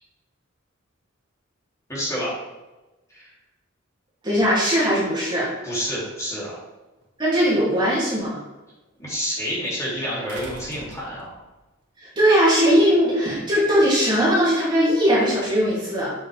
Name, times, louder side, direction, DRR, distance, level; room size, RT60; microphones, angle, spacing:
voice 1, 1.9-2.3 3.1-3.3 5.6-6.5 9.0-11.3, equal, 15° left, -8 dB, 3.0 m, -28 dB
voice 2, 4.2-5.5 7.2-8.4 12.2-16.1, equal, 20° right, -8 dB, 2.7 m, -19 dB
sound 1, 7.0-7.1 10.3-11.6 12.9-13.0, right 2 dB, 60° right, 1.6 m, -41 dB
8.3 x 6.8 x 3.5 m, 1.1 s
head